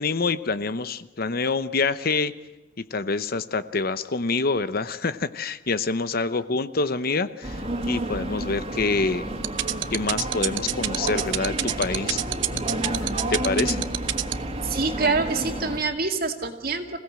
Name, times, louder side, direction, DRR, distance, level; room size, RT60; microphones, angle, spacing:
voice 1, 0.0-2.3 2.8-9.3 9.9-12.2 12.5-12.6 13.3-13.8, left 4 dB, 50° left, 13 dB, 0.9 m, -26 dB
sound 1, 7.4-15.8, right 1 dB, 30° right, 2.6 m, -30 dB
sound 2, 9.4-14.3, right 13 dB, 65° right, 0.9 m, -25 dB
voice 2, 14.6-17.0, right 4 dB, 50° right, 5 dB, 2.4 m, -26 dB
26.5 x 17.0 x 7.6 m, 1.1 s
head